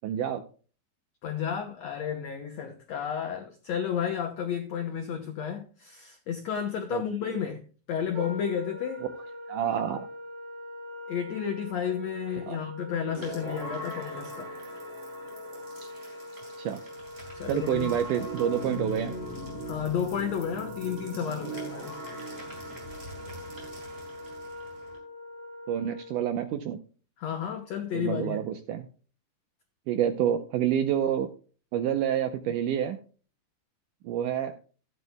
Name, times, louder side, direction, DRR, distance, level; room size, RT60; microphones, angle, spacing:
voice 1, 0.0-0.4 6.9-7.4 9.5-10.0 12.5-12.6 16.6-16.8 17.5-19.2 25.7-26.8 27.9-28.9 29.9-31.3 31.7-33.0 34.0-34.5, right 10 dB, 80° right, 1.9 m, -28 dB
voice 2, 1.2-7.6 7.9-9.1 11.1-14.5 17.3-17.9 19.6-22.0 27.2-28.4, left 8 dB, 75° left, 1.5 m, -32 dB
Wind instrument woodwind instrument, 8.1-26.2, left 1 dB, 55° right, 4.1 m, -43 dB
sound 1, 13.1-25.0, right 1 dB, 20° right, 5.0 m, -40 dB
15.5 x 9.3 x 2.2 m
omnidirectional pair, 4.5 m